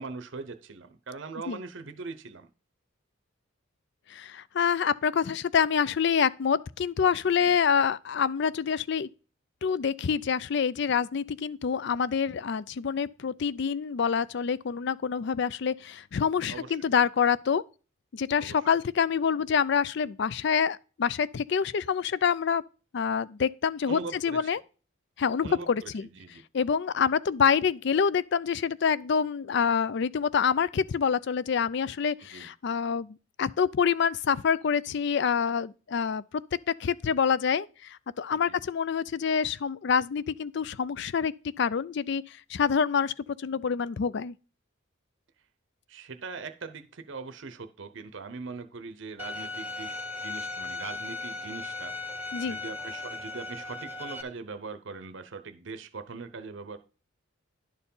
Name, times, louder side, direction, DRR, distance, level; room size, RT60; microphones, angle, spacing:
voice 1, 0.0-2.5 7.4-7.5 16.5-16.9 18.4-18.6 23.9-24.6 25.4-26.4 32.3-32.5 38.3-38.6 45.9-49.9 50.2-51.9 52.5-56.8, right 4 dB, 60° right, 0.7 m, -41 dB
voice 2, 4.1-9.1 9.6-17.6 18.1-22.6 22.9-24.6 25.2-26.1 26.5-36.2 36.8-43.1 43.4-44.3 52.3-52.6, left 6 dB, 55° left, 0.4 m, -26 dB
Bowed string instrument, 49.2-54.2, left 3 dB, 10° right, 0.9 m, -37 dB
11.0 x 4.5 x 5.4 m
head